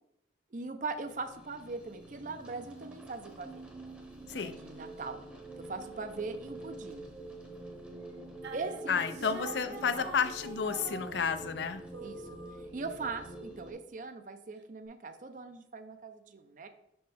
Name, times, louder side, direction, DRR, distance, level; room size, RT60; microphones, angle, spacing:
voice 1, 0.5-3.6 4.3-5.2 5.6-7.1 8.5-10.1 12.0-12.2 12.6-16.7, right 3 dB, 45° right, 8 dB, 0.5 m, -41 dB
sound 1, 0.9-13.7, right 2 dB, 5° right, 0.8 m, -47 dB
sound 2, 8.4-11.7 11.9-13.1, right 2 dB, 70° right, 1.0 m, -46 dB
voice 2, 8.9-11.8, left 6 dB, 70° left, 11 dB, 0.4 m, -31 dB
6.3 x 4.3 x 3.4 m, 0.77 s
head